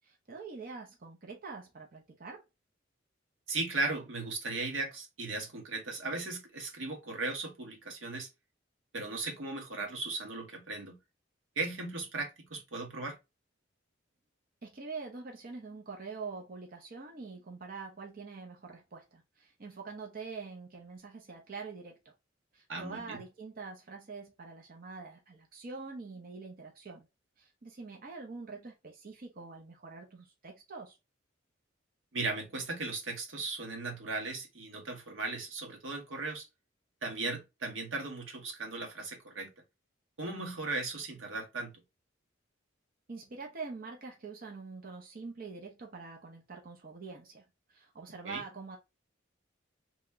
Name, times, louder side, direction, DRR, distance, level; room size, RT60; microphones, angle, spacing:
voice 1, 0.0-2.4 14.6-22.1 22.5-27.1 27.4-31.0 43.1-48.8, right 4 dB, 50° right, 0.7 m, -45 dB
voice 2, 3.5-8.3 8.9-11.0 11.6-13.2 22.7-23.2 32.1-36.5 37.0-39.5 40.2-41.7 48.2-48.4, right 3 dB, 90° right, 1.1 m, -37 dB
3.0 x 2.8 x 3.4 m
head